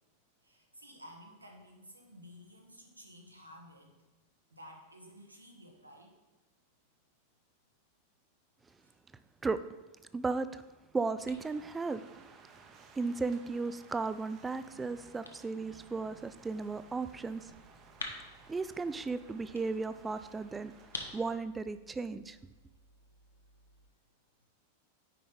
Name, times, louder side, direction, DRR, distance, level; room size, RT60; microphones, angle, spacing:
voice 1, 0.4-3.9 4.5-6.1 8.8-8.9 14.7-15.0, equal, 85° right, 1 dB, 1.5 m, -54 dB
voice 2, 10.1-10.6 10.9-12.3 13.0-17.5 18.5-20.7 21.1-22.4, right 4 dB, 15° right, 12 dB, 0.4 m, -35 dB
sound 1, 10.4-23.9, left 3 dB, 75° left, 1.0 m, -52 dB
sound 2, 11.4-21.4, right 5 dB, 30° right, 0.9 m, -59 dB
9.4 x 5.3 x 3.9 m, 1.1 s
figure-of-eight pair, 90°, 0 cm